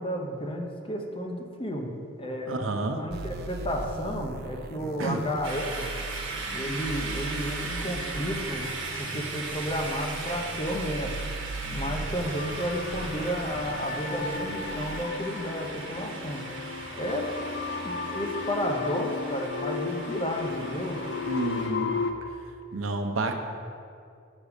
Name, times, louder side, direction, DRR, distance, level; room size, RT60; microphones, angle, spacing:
voice 1, 0.0-1.9 2.2-5.9 6.5-8.7 9.0-11.1 11.7-16.5 16.9-17.3 17.8-21.0, equal, 25° left, 1 dB, 0.8 m, -32 dB
voice 2, 2.5-3.0 5.0-5.2 21.3-22.0 22.7-23.5, right 2 dB, 90° right, 5 dB, 0.7 m, -29 dB
sound 1, 3.1-15.0, right 3 dB, 50° right, 0.4 m, -39 dB
sound 2, 5.4-21.7, right 3 dB, 70° right, 1.3 m, -38 dB
sound 3, 12.2-22.1, left 4 dB, 60° left, 0.5 m, -35 dB
6.6 x 5.3 x 7.1 m, 2.4 s
head